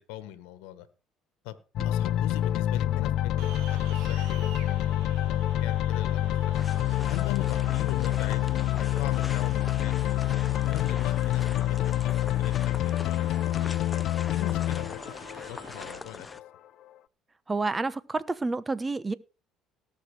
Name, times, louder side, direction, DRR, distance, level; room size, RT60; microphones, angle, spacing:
voice 1, 0.1-0.9 1.4-1.6 1.8-6.2 6.5-6.6 7.1-10.2 10.6-13.8 14.3-16.3, left 14 dB, 80° left, 1.3 m, -41 dB
sound 1, 1.8-16.5, left 13 dB, 65° left, 0.6 m, -27 dB
sound 2, 3.4-16.0, right 8 dB, 80° right, 2.8 m, -49 dB
sound 3, 6.5-16.4, left 3 dB, 20° left, 0.8 m, -43 dB
voice 2, 17.5-19.1, right 3 dB, 20° right, 1.1 m, -29 dB
18.0 x 6.4 x 4.9 m
supercardioid pair, 75°, 0 cm